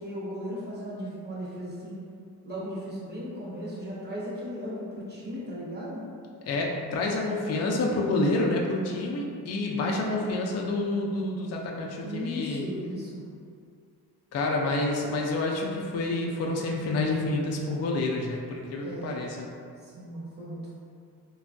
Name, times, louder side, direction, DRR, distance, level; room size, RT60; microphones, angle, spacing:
voice 1, 0.0-2.0 2.4-6.0 12.0-13.2 18.8-19.3 19.8-20.7, equal, 25° right, -7 dB, 0.9 m, -36 dB
voice 2, 6.5-12.6 14.3-19.5, left 2 dB, 40° left, -1 dB, 0.4 m, -28 dB
3.2 x 2.2 x 2.5 m, 2.3 s
cardioid pair, 85°, 41 cm